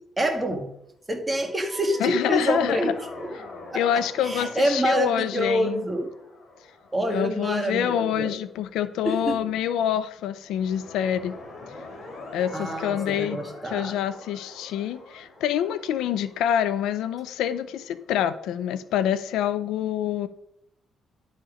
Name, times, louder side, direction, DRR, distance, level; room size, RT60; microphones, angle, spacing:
voice 1, 0.2-0.7 1.1-3.3 3.7-3.8 4.2-6.1 6.9-8.3 9.0-9.4 12.5-13.9, right 1 dB, 15° right, 4 dB, 1.7 m, -27 dB
sound 1, 1.3-8.5 10.4-18.2, left 2 dB, 55° left, 3.1 m, -44 dB
voice 2, 2.0-2.9 3.7-5.8 7.1-11.3 12.3-20.3, left 10 dB, 90° left, 14 dB, 0.5 m, -26 dB
11.0 x 4.2 x 5.0 m, 0.77 s
cardioid pair, 90°, 0 cm